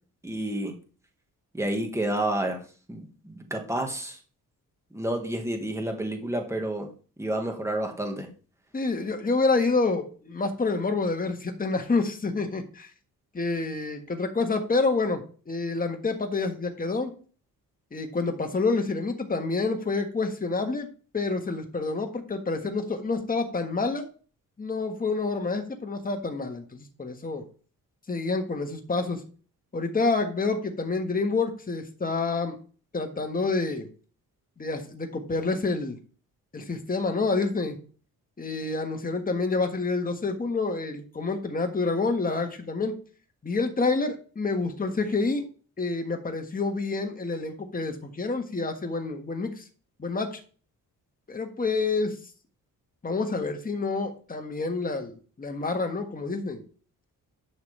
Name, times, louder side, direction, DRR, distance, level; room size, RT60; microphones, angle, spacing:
voice 1, 0.2-0.7 1.5-2.6 2.9-4.2 4.9-6.9 7.2-8.3, right 1 dB, 10° right, 3 dB, 1.7 m, -30 dB
voice 2, 8.7-12.9 13.3-17.1 17.9-20.9 21.1-24.1 24.6-27.4 28.1-29.2 29.7-32.6 32.9-33.9 34.6-36.0 36.5-37.8 38.4-43.0 43.4-45.5 45.8-49.6 50.0-50.4 51.3-52.2 53.0-55.1 55.4-56.6, left 3 dB, 25° left, 4 dB, 1.6 m, -28 dB
11.0 x 5.9 x 3.4 m, 0.39 s
wide cardioid pair, 130°, 35 cm